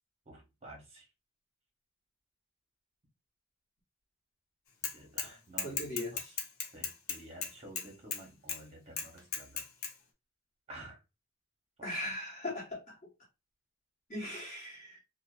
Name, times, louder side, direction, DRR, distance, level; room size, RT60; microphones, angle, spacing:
voice 1, 0.3-1.1 4.8-6.4 6.7-9.7 10.7-11.0 12.0-12.1, right 1 dB, 30° right, 0.8 m, -51 dB
Bicycle / Mechanisms, 4.8-5.3 5.6-8.2 8.5-8.6 9.0-9.9, left 6 dB, 85° left, 0.5 m, -36 dB
voice 2, 5.6-6.3 11.8-12.8 14.1-15.0, left 1 dB, 35° left, 1.2 m, -39 dB
2.4 x 2.1 x 2.4 m
head